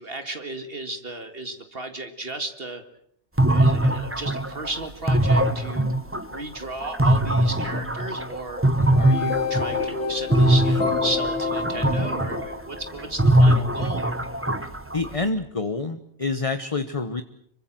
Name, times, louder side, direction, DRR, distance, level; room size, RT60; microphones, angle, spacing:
voice 1, 0.0-2.8 3.5-6.0 6.3-8.6 9.0-14.2, right 2 dB, 55° right, 7 dB, 2.2 m, -34 dB
sound 1, 3.4-10.0 10.3-15.3, right 1 dB, 10° right, 1.5 m, -22 dB
sound 2, 8.8-13.1, left 4 dB, 80° left, 2.6 m, -28 dB
voice 2, 14.9-17.2, left 3 dB, 30° left, 10 dB, 1.2 m, -27 dB
26.5 x 23.5 x 7.7 m, 0.68 s
omnidirectional pair, 1.2 m